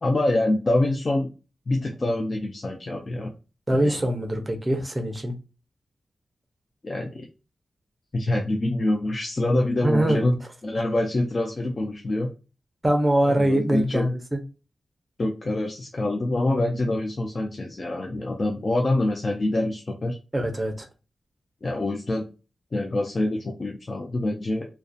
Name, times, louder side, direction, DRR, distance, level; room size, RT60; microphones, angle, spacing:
voice 1, 0.0-1.3 1.7-3.3 3.7-4.0 6.8-7.3 8.1-12.3 13.3-14.1 15.2-20.2 21.6-22.3 22.7-24.7, left 1 dB, 40° left, 1 dB, 0.4 m, -25 dB
voice 2, 3.7-5.3 9.8-10.2 12.8-14.2 20.3-20.7, right 1 dB, 20° right, 4 dB, 0.5 m, -23 dB
2.3 x 2.1 x 2.6 m, 0.31 s
wide cardioid pair, 110°, 0 cm